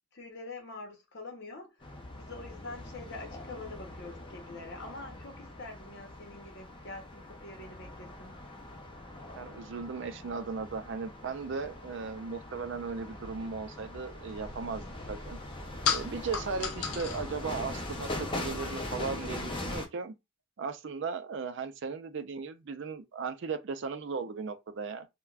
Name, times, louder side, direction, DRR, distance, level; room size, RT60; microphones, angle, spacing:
voice 1, 0.1-1.8 2.1-8.4, left 3 dB, 55° left, 0.8 m, -45 dB
sound 1, 1.8-19.9, left 1 dB, 25° left, 0.5 m, -42 dB
voice 2, 9.4-15.4 15.9-20.1 20.6-25.1, right 5 dB, 55° right, 0.4 m, -37 dB
sound 2, 14.3-19.8, left 6 dB, 80° left, 0.5 m, -38 dB
3.3 x 2.2 x 2.4 m
head